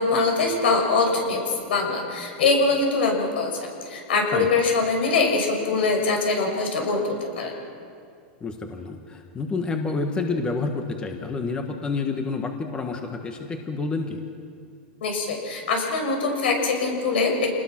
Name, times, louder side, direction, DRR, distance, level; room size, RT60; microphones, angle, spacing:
voice 1, 0.0-7.6 15.0-17.6, left 3 dB, 85° left, 2 dB, 6.1 m, -23 dB
voice 2, 8.4-14.2, left 3 dB, 15° left, 4 dB, 1.5 m, -29 dB
27.5 x 20.0 x 6.1 m, 2.3 s
supercardioid pair, 150°, 6 cm